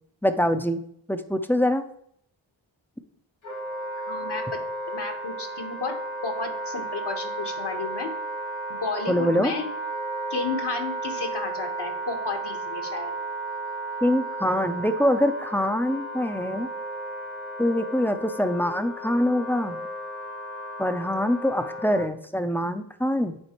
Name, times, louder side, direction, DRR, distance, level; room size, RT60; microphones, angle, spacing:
voice 1, 0.2-0.8 1.1-1.8 9.1-9.5 14.0-16.7 17.6-19.8 20.8-23.4, left 1 dB, 5° left, 9 dB, 0.6 m, -24 dB
Wind instrument woodwind instrument, 3.4-22.1, right 2 dB, 90° left, 2.7 m, -34 dB
voice 2, 4.1-4.4 4.9-5.9 6.2-8.1 8.8-9.7 10.3-13.1, left 4 dB, 55° left, 3 dB, 1.4 m, -32 dB
9.7 x 4.1 x 3.1 m, 0.69 s
cardioid pair, 40°, 47 cm